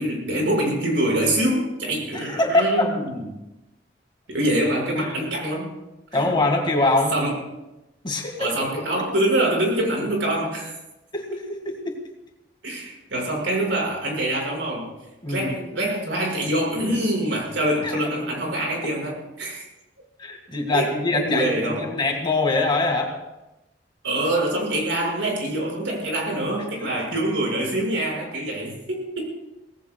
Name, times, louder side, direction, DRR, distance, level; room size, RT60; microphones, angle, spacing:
voice 1, 0.0-3.2 4.3-5.7 6.1-6.3 7.1-7.4 8.4-10.7 12.6-14.9 15.3-19.6 20.7-21.9 24.0-29.4, right 1 dB, 85° right, -1 dB, 6.1 m, -25 dB
voice 2, 2.1-2.9 6.1-7.2 8.0-8.5 8.9-9.0 11.1-12.0 15.2-15.5 17.8-18.0 20.2-23.1 26.8-26.9, left 2 dB, 25° left, 2 dB, 2.2 m, -23 dB
24.5 x 18.5 x 2.4 m, 0.98 s
head